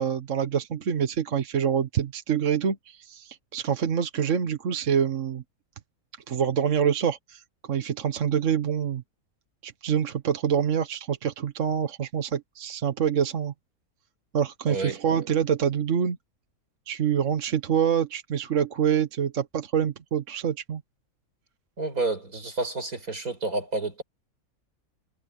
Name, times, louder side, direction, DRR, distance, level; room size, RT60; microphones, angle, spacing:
voice 1, 0.0-5.4 6.3-7.4 7.7-9.0 9.6-13.5 14.3-16.2 16.9-20.8, right 8 dB, 60° right, 1.4 m, -26 dB
voice 2, 14.7-15.0 21.8-24.0, right 3 dB, 85° right, 6.3 m, -30 dB
omnidirectional pair, 1.5 m